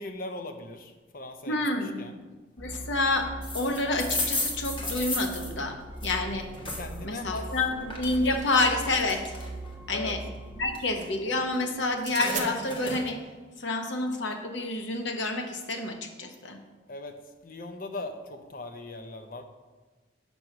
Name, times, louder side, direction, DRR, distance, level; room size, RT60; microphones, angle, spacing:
voice 1, 0.0-2.2 6.7-7.5 9.9-10.2 16.9-17.2 17.4-19.4, left 2 dB, 45° left, 6 dB, 0.6 m, -39 dB
voice 2, 1.5-2.0 2.6-3.3 3.5-5.7 6.0-6.4 7.0-9.2 9.9-10.2 10.6-13.2 13.6-16.6, left 2 dB, 70° left, 4 dB, 0.9 m, -28 dB
sound 1, 2.6-10.8, right 2 dB, 5° left, 1.5 m, -41 dB
sound 2, 3.4-7.0 7.4-9.7 10.2-11.7 12.0-13.0, left 2 dB, 25° left, 1.1 m, -34 dB
sound 3, 7.9-9.2 11.9-12.5, right 8 dB, 40° right, 0.6 m, -40 dB
6.2 x 5.3 x 5.9 m, 1.3 s
head